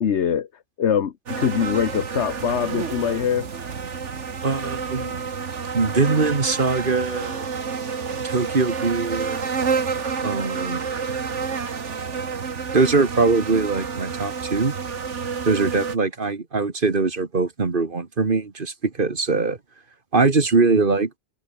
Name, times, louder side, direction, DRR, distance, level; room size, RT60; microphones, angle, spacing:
voice 1, 0.0-3.5, left 8 dB, 70° left, 1.4 m, -23 dB
sound 1, 1.3-16.0, right 5 dB, 80° right, 1.9 m, -29 dB
voice 2, 4.4-5.2 5.7-7.4 8.2-9.5 10.2-10.9 12.7-14.7 15.4-19.6 20.1-21.1, right 4 dB, 45° right, 1.9 m, -22 dB
omnidirectional pair, 1.2 m